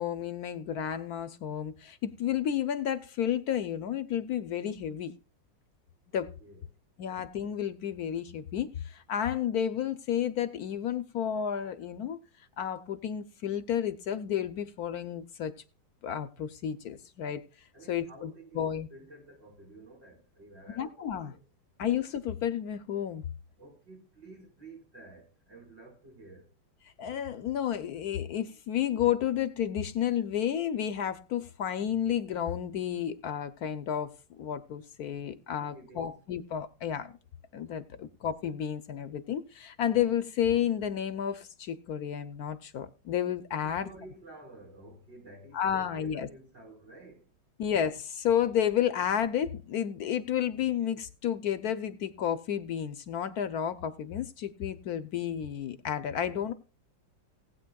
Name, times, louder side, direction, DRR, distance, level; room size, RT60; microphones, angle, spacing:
voice 1, 0.0-5.1 6.1-6.3 7.0-12.2 12.6-15.5 16.0-17.4 17.9-18.9 20.8-21.3 21.8-23.2 27.0-34.1 34.4-37.2 37.5-43.9 45.5-46.3 47.6-56.5, left 9 dB, 65° left, 1.1 m, -31 dB
voice 2, 6.1-6.6 17.7-21.4 23.6-26.5 35.6-36.2 37.9-38.1 43.6-47.3, right 2 dB, 80° right, 5.2 m, -52 dB
19.0 x 8.6 x 2.3 m
omnidirectional pair, 2.0 m